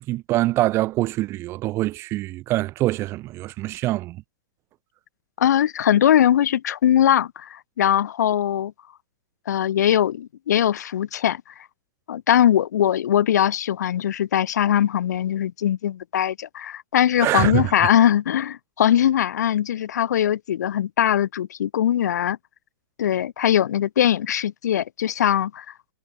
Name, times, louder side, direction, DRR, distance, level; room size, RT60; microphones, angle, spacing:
voice 1, 0.1-4.2 17.2-17.7, right 17 dB, 25° right, 0.4 m, -24 dB
voice 2, 5.4-8.7 9.5-11.4 12.1-22.4 23.0-25.7, left 10 dB, 60° left, 0.4 m, -21 dB
figure-of-eight pair, 105°, 10 cm